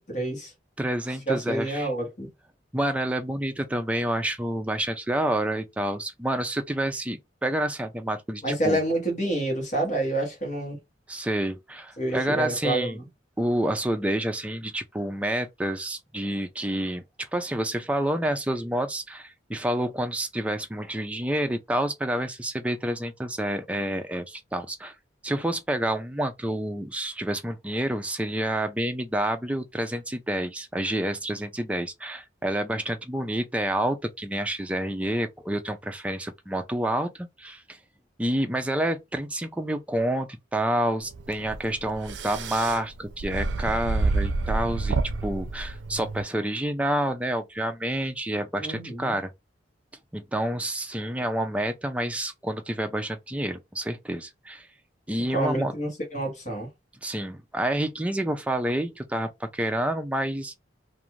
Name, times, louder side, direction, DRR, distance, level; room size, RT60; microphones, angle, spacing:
voice 1, 0.1-0.5 1.3-2.3 8.4-10.8 12.0-13.0 48.6-49.2 55.3-56.7, right 1 dB, 40° left, 1.2 m, -28 dB
voice 2, 0.8-1.9 2.7-8.8 11.1-13.0 13.4-24.9 25.2-37.8 38.2-45.0 45.2-49.3 50.1-54.7 55.1-55.7 57.0-60.6, right 1 dB, 5° right, 0.3 m, -28 dB
sound 1, 41.1-46.2, right 3 dB, 80° right, 0.4 m, -29 dB
2.5 x 2.4 x 3.0 m
head